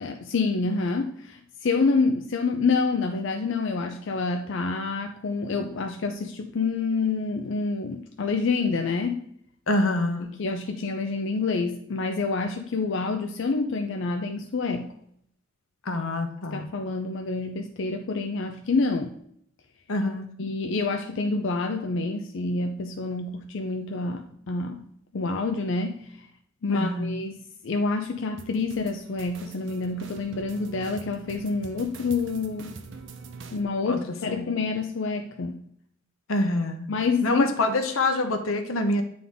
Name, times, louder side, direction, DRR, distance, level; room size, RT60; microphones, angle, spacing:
voice 1, 0.0-9.2 10.4-14.9 16.5-19.1 20.4-24.8 25.1-26.2 26.6-32.8 33.5-35.6 36.9-37.5, left 4 dB, 60° left, 4 dB, 0.5 m, -27 dB
voice 2, 9.7-10.3 15.8-16.6 19.9-20.3 26.7-27.2 33.8-34.0 34.3-34.4 36.3-36.9 37.2-39.0, left 2 dB, 85° left, 6 dB, 0.9 m, -25 dB
sound 1, 28.4-33.6, right 3 dB, 60° right, 0.6 m, -44 dB
9.2 x 3.8 x 3.5 m, 0.69 s
head